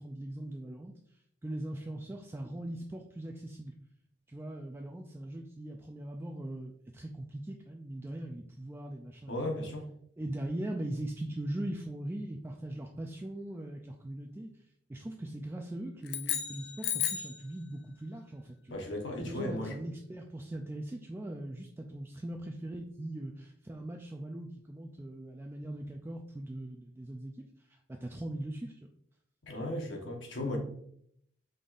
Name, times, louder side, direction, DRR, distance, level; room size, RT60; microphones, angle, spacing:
voice 1, 0.0-3.7 4.3-9.4 10.2-14.5 14.9-18.7 19.3-28.7, right 1 dB, 10° right, 2 dB, 0.3 m, -40 dB
voice 2, 9.3-9.9 18.7-19.8 29.4-30.6, left 1 dB, 85° left, 2 dB, 1.0 m, -36 dB
sound 1, 16.0-17.4, left 9 dB, 60° left, 0.5 m, -33 dB
5.2 x 3.9 x 2.5 m, 0.67 s
head